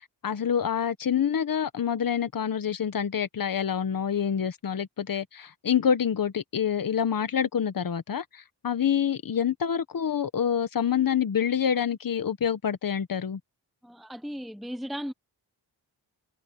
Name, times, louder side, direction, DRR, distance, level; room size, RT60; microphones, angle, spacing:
voice 1, 0.2-13.4, left 8 dB, 50° left, 1.3 m, -27 dB
voice 2, 13.8-15.1, equal, ahead, 0.7 m, -36 dB
wide cardioid pair, 110°, 43 cm